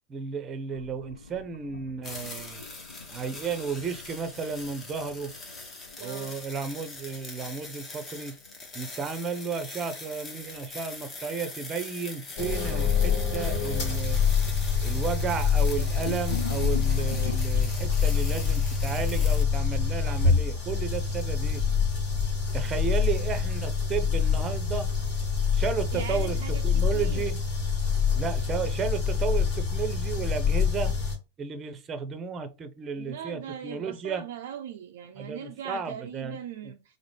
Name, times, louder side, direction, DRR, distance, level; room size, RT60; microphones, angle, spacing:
voice 1, 0.1-2.6 3.1-5.3 6.0-8.3 8.7-14.2 14.8-21.6 22.5-24.9 25.5-26.4 26.6-27.4 28.2-30.9 31.4-34.2 35.2-36.4, right 6 dB, 25° right, 0.7 m, -33 dB
sound 1, 0.7-7.5 7.8-8.7 10.4-10.7 11.3-11.4 12.4-12.5 12.8-13.3 13.7-17.4, left 6 dB, 70° left, 0.3 m, -43 dB
sound 2, 2.0-19.4, left 3 dB, 20° left, 0.9 m, -42 dB
voice 2, 6.0-6.4 23.0-23.3 25.9-27.3 33.0-37.0, right 9 dB, 55° right, 0.4 m, -40 dB
sound 3, 12.4-31.2, left 6 dB, 45° left, 1.4 m, -26 dB
4.7 x 2.1 x 3.4 m
figure-of-eight pair, 90°, 0 cm